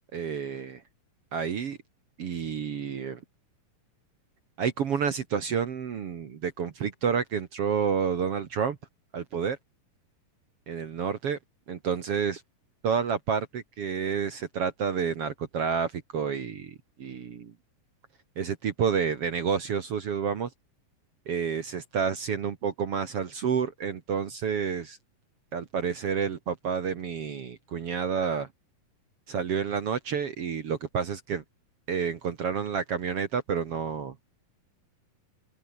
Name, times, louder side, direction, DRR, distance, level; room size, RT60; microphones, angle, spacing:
voice 1, 0.1-0.8 1.3-1.8 2.2-3.2 4.6-8.8 9.1-9.6 10.7-11.4 11.7-12.4 12.8-17.5 18.4-20.5 21.3-25.0 25.5-28.5 29.3-31.4 31.9-34.3, right 6 dB, 50° right, 2.0 m, -29 dB
omnidirectional pair, 4.2 m